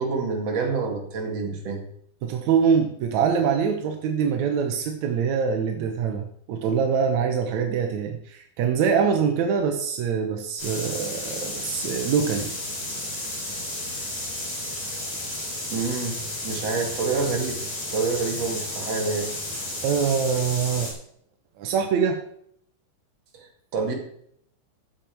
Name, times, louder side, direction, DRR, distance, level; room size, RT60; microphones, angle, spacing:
voice 1, 0.0-1.8 15.7-17.7 17.9-19.3 23.3-23.9, right 4 dB, 45° right, 1 dB, 3.0 m, -27 dB
voice 2, 2.2-12.5 19.8-20.9 21.6-22.2, right 6 dB, 70° right, 4 dB, 1.8 m, -24 dB
sound 1, 10.6-20.9, left 1 dB, 30° left, 4.9 m, -32 dB
13.5 x 8.9 x 4.5 m, 0.66 s
omnidirectional pair, 4.5 m